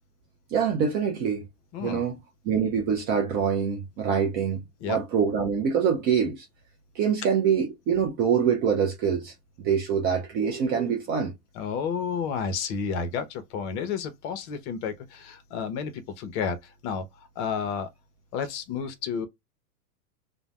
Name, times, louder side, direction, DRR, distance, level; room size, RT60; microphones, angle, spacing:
voice 1, 0.5-1.4 1.8-2.2 2.5-4.6 4.9-6.5 7.0-9.3 9.6-11.3, right 7 dB, 25° right, 0.4 m, -25 dB
voice 2, 11.5-17.1 17.4-17.9 18.3-19.3, left 6 dB, 50° left, 0.8 m, -31 dB
2.5 x 2.2 x 3.1 m
hypercardioid pair, 115°, 45 cm